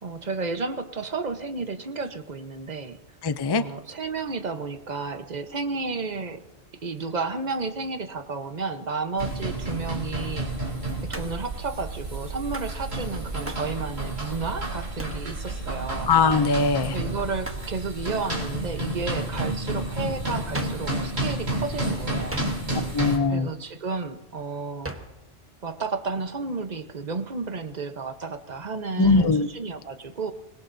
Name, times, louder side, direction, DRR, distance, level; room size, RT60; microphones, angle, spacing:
voice 1, 0.0-3.0 3.5-6.4 6.8-10.5 11.0-16.1 16.9-22.5 23.3-24.9 25.6-30.3, right 4 dB, 40° right, 8 dB, 1.1 m, -32 dB
voice 2, 3.2-3.6 16.1-16.9 22.9-23.5 29.0-29.5, left 4 dB, 40° left, 11 dB, 0.3 m, -21 dB
sound 1, 9.2-23.2, right 1 dB, 65° right, 3.6 m, -31 dB
Hands, 11.1-11.5 12.5-12.8 13.5-13.7 15.0-15.3 17.4-17.7 20.5-20.9 22.3-22.9 24.8-25.2, right 1 dB, 10° right, 1.0 m, -38 dB
25.0 x 21.0 x 2.7 m, 0.99 s
omnidirectional pair, 1.2 m